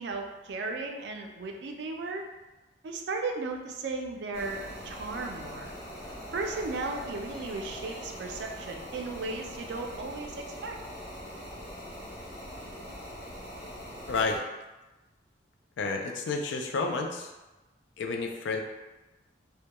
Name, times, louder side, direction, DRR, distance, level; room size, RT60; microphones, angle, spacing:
voice 1, 0.0-2.2 2.8-4.6 4.8-5.8 6.3-10.8, right 3 dB, 70° right, 3 dB, 0.3 m, -35 dB
sound 1, 3.8-8.2, equal, 5° left, 0.4 m, -51 dB
sound 2, 4.3-14.4, equal, 35° left, 0.8 m, -43 dB
voice 2, 14.1-14.4 15.8-17.3 18.0-18.6, left 4 dB, 90° left, 3 dB, 0.3 m, -30 dB
2.2 x 2.1 x 2.8 m, 1.1 s
head